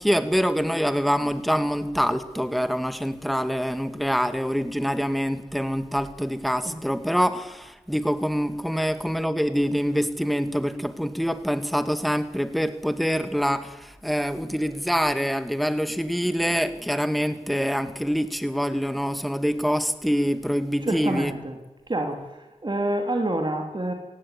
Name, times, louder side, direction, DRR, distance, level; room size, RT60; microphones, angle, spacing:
voice 1, 0.0-21.4, equal, ahead, 10 dB, 2.1 m, -25 dB
voice 2, 20.9-21.5 21.9-22.3 22.6-23.9, right 1 dB, 35° right, 3 dB, 3.2 m, -27 dB
18.0 x 16.0 x 9.9 m, 1.0 s
cardioid pair, 40°, 13 cm